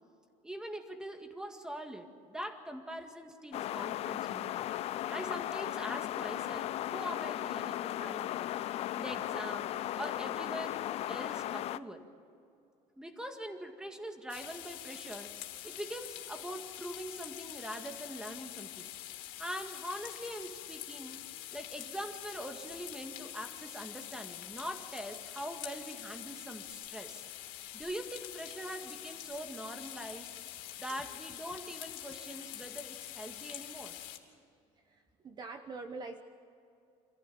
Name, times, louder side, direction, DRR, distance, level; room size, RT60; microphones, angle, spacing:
voice 1, 0.4-4.7 5.1-8.5 9.0-12.1 13.0-15.4 15.6-18.9 19.4-21.2 21.5-27.2 27.7-30.3 30.8-34.0, equal, 5° right, 5 dB, 2.0 m, -43 dB
sound 1, 3.5-11.8, left 13 dB, 50° left, 0.6 m, -36 dB
sound 2, 14.3-34.2, left 13 dB, 85° left, 2.9 m, -45 dB
voice 2, 34.8-36.2, right 3 dB, 30° right, 7 dB, 1.1 m, -44 dB
26.5 x 15.5 x 8.6 m, 2.6 s
cardioid pair, 150°, 14 cm